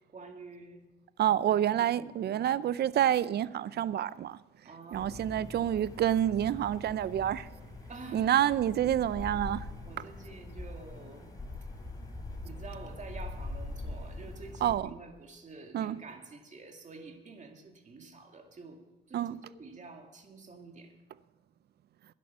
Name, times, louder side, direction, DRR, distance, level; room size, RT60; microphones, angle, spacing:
voice 1, 0.1-0.8 2.0-2.5 4.6-5.6 7.9-8.6 9.9-11.3 11.6-11.7 12.4-21.0, right 3 dB, 35° right, 2.1 m, -49 dB
voice 2, 1.2-4.4 4.9-7.5 8.1-9.7 14.6-14.9 15.7-16.0 19.1-19.4, right 11 dB, 55° right, 0.5 m, -28 dB
sound 1, 4.9-14.8, left 2 dB, 20° left, 3.2 m, -43 dB
11.5 x 10.5 x 6.1 m
cardioid pair, 90°, 20 cm